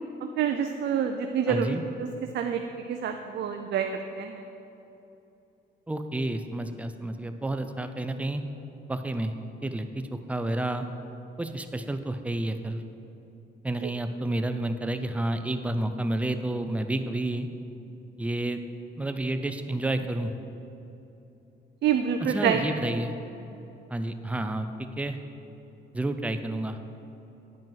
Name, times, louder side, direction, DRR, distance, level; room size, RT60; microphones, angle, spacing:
voice 1, 0.2-1.8 2.3-2.6 2.9-4.4 13.8-13.9 21.8-22.6, right 8 dB, 60° right, 6 dB, 0.5 m, -27 dB
voice 2, 1.5-1.8 5.9-8.4 8.9-9.3 9.6-10.9 11.4-12.8 13.6-17.5 18.2-18.6 19.0-20.3 22.2-23.1 23.9-25.2 25.9-26.8, right 1 dB, 5° right, 8 dB, 0.5 m, -30 dB
9.2 x 5.1 x 5.6 m, 2.9 s
cardioid pair, 90°, 20 cm